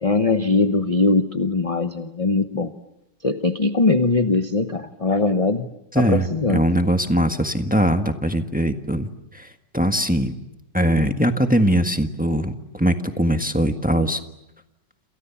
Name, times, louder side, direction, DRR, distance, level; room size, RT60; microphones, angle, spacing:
voice 1, 0.0-2.7 3.2-5.7 5.9-6.6, left 3 dB, 25° left, 8 dB, 0.8 m, -21 dB
voice 2, 5.9-9.1 9.3-9.5 9.7-10.3 10.7-14.2, right 1 dB, 5° right, 6 dB, 1.3 m, -21 dB
28.5 x 28.0 x 7.1 m, 0.90 s
omnidirectional pair, 2.0 m